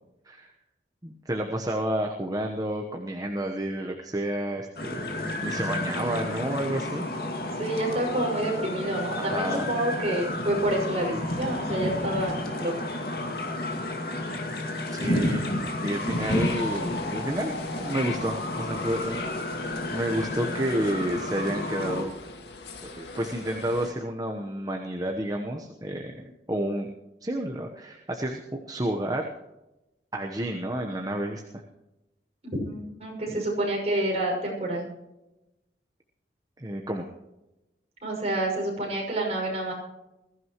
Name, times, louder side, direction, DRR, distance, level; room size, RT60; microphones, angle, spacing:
voice 1, 1.0-7.0 9.1-9.7 14.9-15.4 15.8-19.2 19.9-22.1 22.8-26.9 27.2-29.3 30.1-31.4 33.3-33.4 36.6-37.1, right 1 dB, 20° right, 2 dB, 1.1 m, -30 dB
sound 1, 4.8-22.0, left 1 dB, 60° left, 2.3 m, -31 dB
voice 2, 7.6-12.7 32.4-34.9 38.0-39.7, right 1 dB, 40° right, -1 dB, 6.0 m, -28 dB
sound 2, 15.9-23.9, left 3 dB, 80° left, 1.9 m, -41 dB
21.0 x 14.5 x 3.1 m, 0.96 s
head